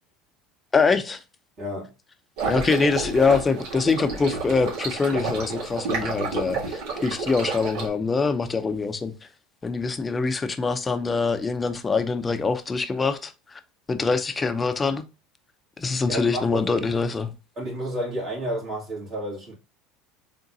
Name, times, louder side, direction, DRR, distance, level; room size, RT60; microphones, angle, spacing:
voice 1, 0.7-1.2 2.5-9.1 9.6-13.6 13.9-15.0 15.8-17.3, left 4 dB, 20° left, 0.6 m, -24 dB
voice 2, 1.6-1.9 16.1-17.1 17.6-19.5, right 1 dB, 50° right, 2.2 m, -31 dB
sound 1, 2.4-7.9, right 4 dB, 75° right, 1.8 m, -30 dB
3.9 x 3.6 x 2.7 m
hypercardioid pair, 90°, 0 cm